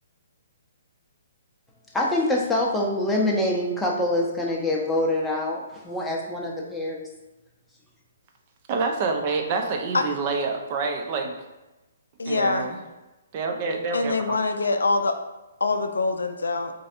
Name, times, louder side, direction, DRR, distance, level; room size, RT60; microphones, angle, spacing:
voice 1, 1.9-7.1, left 1 dB, 5° left, -2 dB, 0.6 m, -25 dB
voice 2, 8.7-11.3 12.3-12.8 13.3-14.4, right 4 dB, 35° right, 3 dB, 0.5 m, -27 dB
voice 3, 12.2-12.7 13.9-15.2 15.6-16.7, left 3 dB, 70° left, 6 dB, 0.3 m, -24 dB
4.0 x 2.6 x 2.4 m, 1.1 s
figure-of-eight pair, 125°, 0 cm